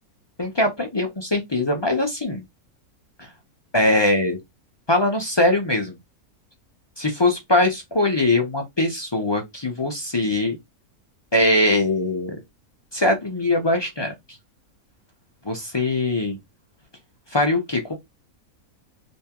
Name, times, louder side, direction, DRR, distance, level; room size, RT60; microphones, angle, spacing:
voice 1, 0.4-2.4 3.2-3.3 3.7-4.4 4.9-6.0 7.0-10.6 11.3-12.4 12.9-14.1 15.5-16.4 17.3-17.9, left 2 dB, 40° left, 0.4 m, -21 dB
3.4 x 3.1 x 2.9 m
omnidirectional pair, 1.6 m